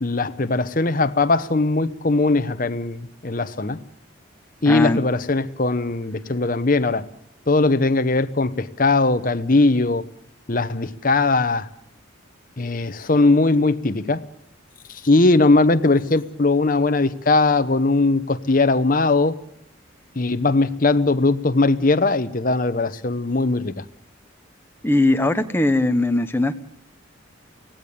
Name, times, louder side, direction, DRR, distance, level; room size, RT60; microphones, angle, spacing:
voice 1, 0.0-3.8 4.6-7.1 7.5-10.1 10.5-11.7 12.6-14.2 14.9-19.4 20.2-23.8, left 3 dB, 40° left, 11 dB, 0.9 m, -19 dB
voice 2, 4.6-5.0 24.8-26.5, left 2 dB, 10° left, 8 dB, 0.9 m, -19 dB
25.0 x 17.5 x 6.9 m, 0.76 s
head